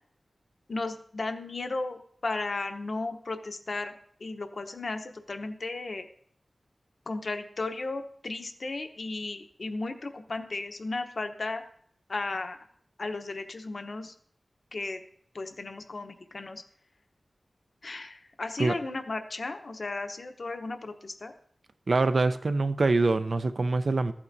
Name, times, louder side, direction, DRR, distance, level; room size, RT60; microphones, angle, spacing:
voice 1, 0.7-6.1 7.1-11.6 12.1-12.6 13.0-14.1 14.7-15.0 15.3-16.6 17.8-21.3, left 3 dB, 60° left, 6 dB, 0.9 m, -35 dB
voice 2, 21.9-24.1, right 3 dB, 65° right, 10 dB, 0.6 m, -24 dB
14.5 x 8.6 x 2.7 m, 0.63 s
wide cardioid pair, 95°, 0 cm